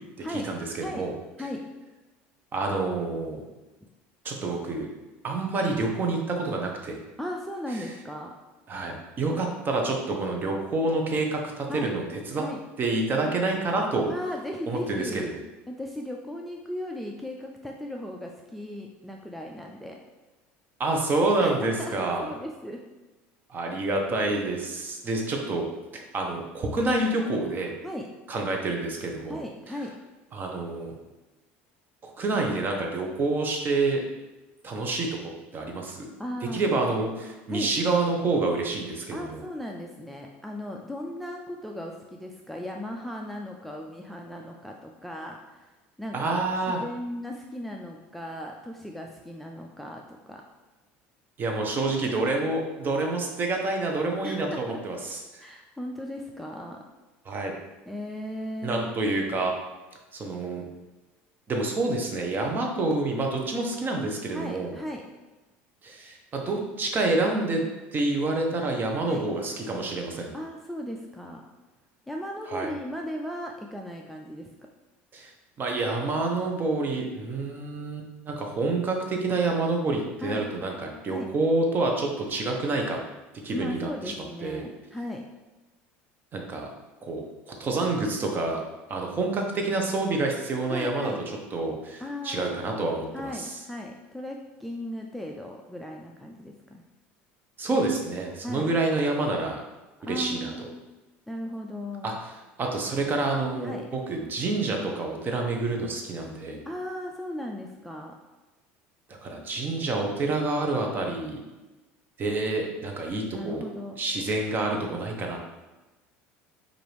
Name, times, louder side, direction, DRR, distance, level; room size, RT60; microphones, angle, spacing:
voice 1, 0.3-1.1 2.5-3.4 4.2-4.9 5.2-7.0 8.7-12.4 12.8-14.1 14.7-15.3 20.8-22.3 23.5-25.7 25.9-27.7 28.3-29.4 30.3-31.0 32.0-34.0 34.6-36.1 36.5-39.4 46.1-46.8 51.4-55.5 57.2-57.5 58.6-59.6 60.1-60.6 61.5-64.7 65.8-67.6 67.9-70.3 72.5-72.7 75.1-75.3 75.6-83.0 83.4-84.1 84.4-84.6 86.3-86.7 87.0-88.6 88.9-91.1 91.5-93.5 97.6-99.6 100.1-100.7 102.0-102.1 102.6-106.6 109.2-111.4 112.2-113.6 114.0-115.4, right 2 dB, 35° right, 2 dB, 0.8 m, -28 dB
voice 2, 7.2-8.3 11.7-11.9 12.3-12.6 14.1-15.4 15.7-20.0 21.4-22.8 27.8-28.1 29.3-30.0 36.2-36.6 37.5-37.7 39.1-50.4 54.2-54.8 55.4-56.8 57.9-59.0 64.3-65.0 69.0-69.2 70.3-71.4 72.1-74.5 80.2-80.5 81.0-81.3 83.5-85.3 90.7-91.2 92.0-92.6 93.1-96.8 98.4-98.7 100.0-100.7 101.3-102.2 103.6-103.9 106.7-108.2 113.3-114.0, left 1 dB, ahead, 1 dB, 0.3 m, -37 dB
4.8 x 2.6 x 3.2 m, 1.1 s
supercardioid pair, 100°, 6 cm